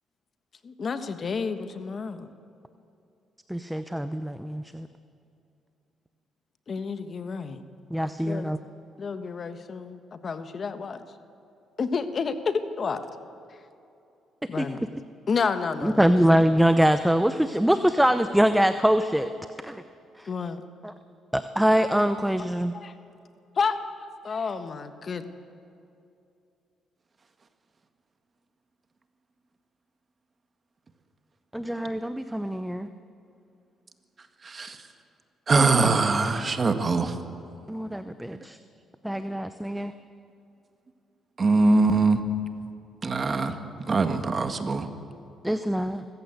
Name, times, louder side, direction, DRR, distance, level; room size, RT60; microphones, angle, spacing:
voice 1, 0.6-2.3 6.7-7.6 8.3-8.5 9.0-11.0 11.8-13.0 14.5-14.8 15.3-16.1 20.3-20.6 22.7-22.9 23.6-25.2, left 5 dB, 45° left, 9 dB, 1.4 m, -30 dB
voice 2, 3.5-4.9 7.9-8.6 14.6-14.7 15.8-19.3 19.6-19.8 20.2-20.3 20.8-20.9 21.3-22.7 31.5-32.9 37.7-38.6 39.0-39.9 45.4-46.0, equal, 5° right, 10 dB, 0.8 m, -23 dB
voice 3, 34.4-34.8 35.5-37.1 41.4-42.2 43.0-43.5 43.9-44.9, right 3 dB, 35° right, 7 dB, 1.8 m, -22 dB
24.5 x 15.5 x 8.1 m, 2.6 s
cardioid pair, 90°, 0 cm